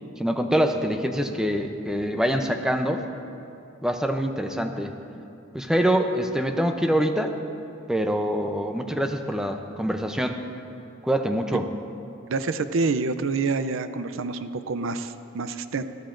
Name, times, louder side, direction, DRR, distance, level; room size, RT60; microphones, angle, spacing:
voice 1, 0.2-3.0 3.8-4.9 5.5-7.3 7.9-10.4 11.0-11.6, equal, 5° right, 5 dB, 0.6 m, -25 dB
voice 2, 12.3-15.8, right 4 dB, 70° right, 11 dB, 0.5 m, -27 dB
20.0 x 13.5 x 2.6 m, 2.7 s
head